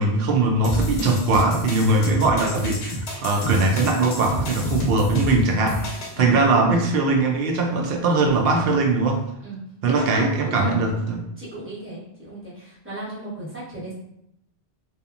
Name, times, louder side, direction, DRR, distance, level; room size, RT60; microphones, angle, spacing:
voice 1, 0.0-9.2 9.8-11.2, right 3 dB, 65° right, 2 dB, 0.7 m, -21 dB
sound 1, 0.6-6.2, left 2 dB, 75° left, 0.9 m, -30 dB
voice 2, 6.1-6.5 9.4-9.6 9.8-13.9, right 1 dB, 10° right, -8 dB, 1.0 m, -35 dB
2.7 x 2.3 x 2.4 m, 0.79 s
omnidirectional pair, 1.1 m